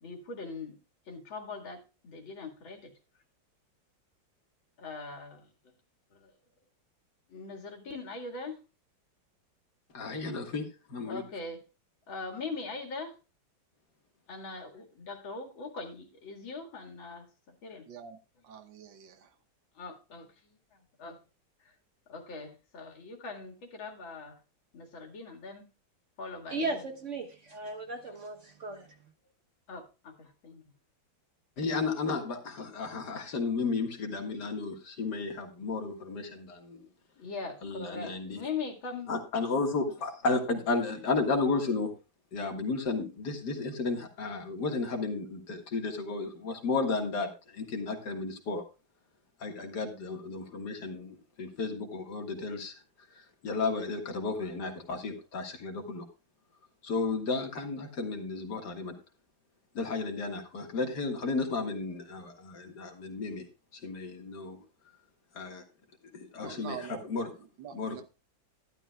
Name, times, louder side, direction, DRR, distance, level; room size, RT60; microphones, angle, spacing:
voice 1, 0.0-0.8 1.1-2.9 4.8-5.5 6.1-6.3 7.3-8.6 11.1-11.6 12.1-13.2 14.3-17.9 19.8-21.2 21.6-21.7 22.1-24.4 24.7-25.7 26.2-26.9 29.7-30.6 37.2-39.1, left 4 dB, 85° left, 2.7 m, -41 dB
voice 2, 9.9-11.2 31.6-36.8 37.6-38.4 39.1-41.9 42.3-48.6 49.4-52.7 53.2-56.0 56.8-59.0 59.7-63.5 63.7-64.6 65.4-65.6 66.1-67.3 67.7-68.0, left 3 dB, 60° left, 2.2 m, -33 dB
voice 3, 17.9-18.2 18.4-19.1 66.4-68.0, right 8 dB, 75° right, 1.7 m, -45 dB
voice 4, 26.5-28.9, right 2 dB, 45° right, 1.3 m, -36 dB
12.0 x 12.0 x 2.3 m
omnidirectional pair, 2.1 m